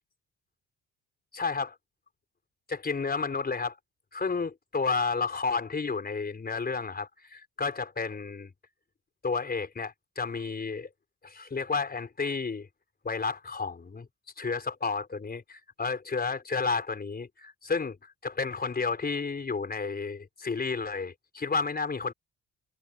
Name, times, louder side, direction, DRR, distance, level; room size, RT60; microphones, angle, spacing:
voice 1, 1.3-1.7 2.7-3.8 4.1-8.5 9.2-10.9 11.2-12.7 13.0-14.1 14.4-18.0 18.2-22.1, left 4 dB, 30° left, 4.4 m, -31 dB
cardioid pair, 90°, 30 cm